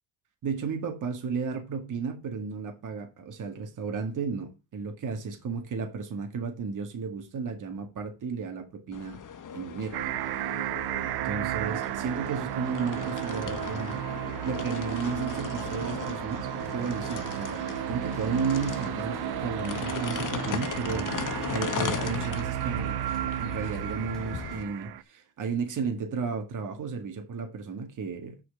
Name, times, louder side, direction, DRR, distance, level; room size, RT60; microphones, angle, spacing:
voice 1, 0.4-9.2 9.5-10.0 10.3-10.7 11.2-14.0 14.4-23.0 23.4-28.4, right 5 dB, 50° right, 2.0 m, -33 dB
sound 1, 8.9-24.6, left 7 dB, 50° left, 1.6 m, -37 dB
sound 2, 9.9-25.0, right 15 dB, 70° right, 0.7 m, -33 dB
sound 3, 16.6-24.6, equal, ahead, 2.9 m, -54 dB
6.6 x 4.9 x 6.3 m
cardioid pair, 85°, 38 cm